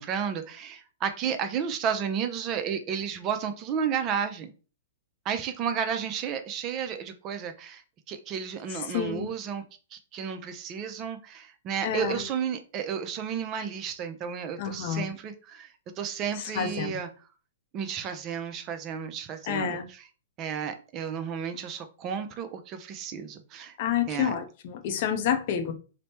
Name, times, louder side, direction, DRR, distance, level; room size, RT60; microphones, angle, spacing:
voice 1, 0.0-4.5 5.3-9.6 9.9-17.1 17.7-20.0 20.4-23.8 24.1-24.4, right 7 dB, 30° right, 0.4 m, -32 dB
voice 2, 8.7-9.3 11.8-12.2 14.6-15.1 16.4-17.0 19.5-19.9 23.8-25.7, left 8 dB, 50° left, 0.5 m, -29 dB
3.0 x 2.1 x 2.8 m
hypercardioid pair, 125°, 0 cm